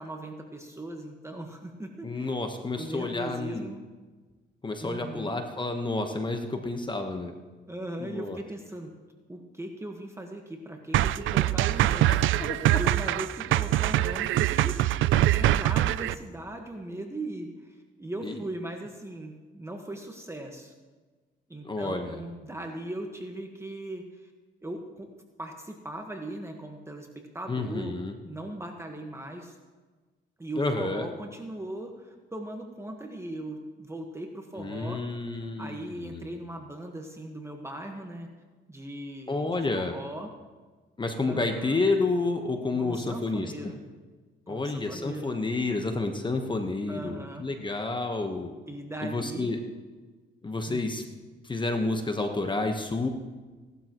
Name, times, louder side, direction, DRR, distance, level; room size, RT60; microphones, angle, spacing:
voice 1, 0.0-2.3 2.8-3.8 4.8-5.4 7.7-9.0 9.3-12.4 12.7-14.8 15.1-20.7 21.5-24.3 24.6-25.1 25.4-28.0 28.2-29.6 30.4-35.1 35.6-38.3 38.7-40.3 41.2-41.8 42.8-43.8 44.5-45.4 46.9-47.5 48.7-49.5 50.7-50.8, right 1 dB, 15° right, 3 dB, 1.4 m, -39 dB
voice 2, 2.0-3.7 4.6-7.3 8.0-8.4 12.1-12.8 18.2-18.4 21.6-22.2 27.5-28.1 30.6-31.1 34.6-36.3 39.3-39.9 41.0-43.7 44.5-48.5 49.0-49.6 50.4-51.0 51.4-53.1, left 3 dB, 25° left, 5 dB, 1.2 m, -30 dB
sound 1, 10.9-16.1, right 14 dB, 80° right, 0.4 m, -24 dB
17.5 x 12.0 x 3.1 m, 1.3 s
cardioid pair, 90°, 20 cm